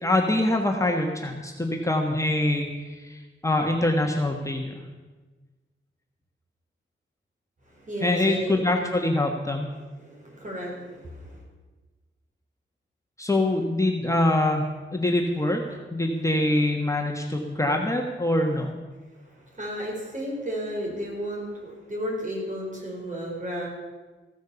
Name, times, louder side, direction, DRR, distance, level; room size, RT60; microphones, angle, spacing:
voice 1, 0.0-4.8 8.0-9.7 13.2-14.7 14.9-15.6 15.9-18.7, left 1 dB, 15° left, 1 dB, 1.4 m, -24 dB
voice 2, 7.7-8.9 9.9-11.4 19.2-23.7, equal, 40° right, -2 dB, 4.9 m, -33 dB
15.5 x 9.2 x 7.0 m, 1.3 s
wide cardioid pair, 105°, 20 cm